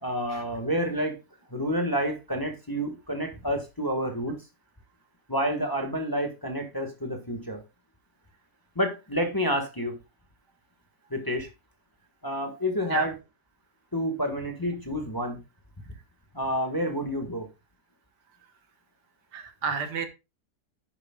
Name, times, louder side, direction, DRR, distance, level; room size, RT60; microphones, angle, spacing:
voice 1, 0.0-1.2 1.5-4.3 5.3-7.6 8.7-9.9 11.1-11.5 12.2-13.1 13.9-15.4 16.3-17.5, equal, 15° left, 3 dB, 1.4 m, -29 dB
voice 2, 19.3-20.1, right 6 dB, 85° right, 8 dB, 1.9 m, -31 dB
10.5 x 9.9 x 2.3 m, 0.26 s
omnidirectional pair, 1.8 m